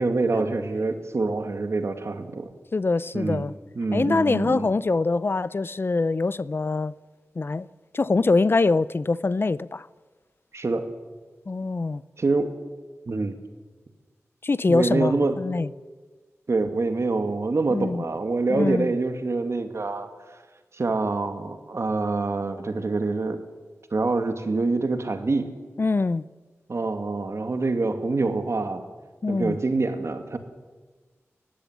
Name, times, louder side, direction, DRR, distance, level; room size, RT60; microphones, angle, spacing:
voice 1, 0.0-2.5 3.1-3.5 3.8-4.7 10.5-10.9 12.2-12.5 13.1-13.4 14.7-15.4 16.5-20.1 20.7-23.4 23.9-25.5 26.7-28.8 29.3-30.4, right 3 dB, 60° right, 2.2 m, -25 dB
voice 2, 2.7-3.5 3.9-6.9 7.4-7.7 7.9-9.9 11.5-12.0 14.4-15.7 17.7-18.0 18.5-18.9 25.8-26.2 29.2-29.6, left 3 dB, 45° left, 0.5 m, -24 dB
19.0 x 15.0 x 9.5 m
wide cardioid pair, 70°, 5 cm